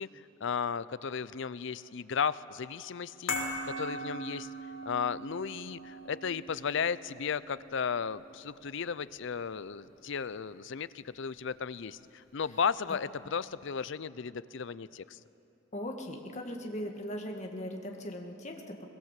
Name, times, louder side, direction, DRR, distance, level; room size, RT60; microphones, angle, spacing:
voice 1, 0.0-3.3 3.6-4.5 4.9-15.2, left 6 dB, 60° left, 17 dB, 0.5 m, -35 dB
sound 1, 3.3-9.7 10.0-10.1, equal, 80° left, 3.2 m, -41 dB
voice 2, 15.7-18.9, equal, 35° left, 2 dB, 1.8 m, -39 dB
22.0 x 21.5 x 7.5 m, 2.9 s
head